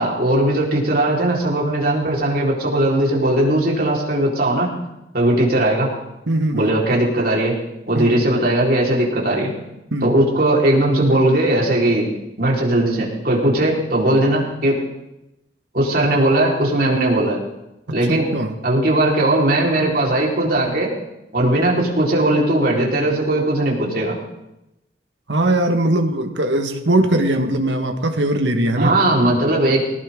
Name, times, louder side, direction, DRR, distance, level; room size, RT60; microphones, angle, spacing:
voice 1, 0.0-4.7 5.1-5.9 6.5-7.5 7.9-9.5 10.0-12.1 12.4-14.8 15.7-17.4 17.9-18.3 18.6-20.9 21.3-24.2 28.7-29.8, right 1 dB, 55° right, -3 dB, 4.4 m, -18 dB
voice 2, 6.3-6.7 7.9-8.2 9.9-10.1 17.9-18.5 25.3-28.9, right 1 dB, 85° right, 5 dB, 1.6 m, -20 dB
20.5 x 18.0 x 3.8 m, 0.91 s
head